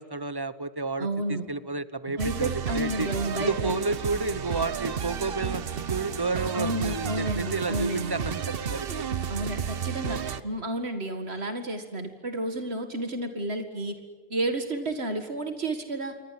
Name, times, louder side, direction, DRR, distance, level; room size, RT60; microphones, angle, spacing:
voice 1, 0.0-3.1 3.4-9.1, right 3 dB, 25° right, 15 dB, 1.0 m, -31 dB
voice 2, 1.0-1.5 2.2-3.8 6.5-8.2 9.3-14.0 14.3-16.2, right 1 dB, 80° right, 7 dB, 2.3 m, -31 dB
sound 1, 2.2-10.4, right 7 dB, 65° right, 1.1 m, -32 dB
28.0 x 23.5 x 7.7 m, 1.5 s
omnidirectional pair, 1.1 m